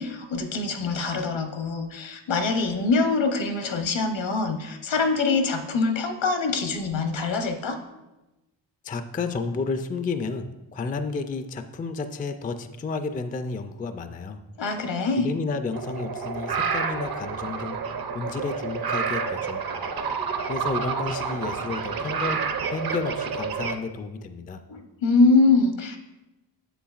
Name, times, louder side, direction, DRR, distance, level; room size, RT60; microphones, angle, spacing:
voice 1, 0.0-7.8 14.6-15.3 24.7-26.0, left 3 dB, 70° left, 6 dB, 0.9 m, -24 dB
voice 2, 8.8-14.4 15.2-17.8 18.1-19.6 20.5-22.4 22.7-24.6, left 4 dB, 20° left, 9 dB, 0.3 m, -31 dB
sound 1, 15.7-23.8, right 5 dB, 50° right, 0.6 m, -29 dB
7.0 x 7.0 x 2.4 m, 1.0 s
cardioid pair, 60°, 47 cm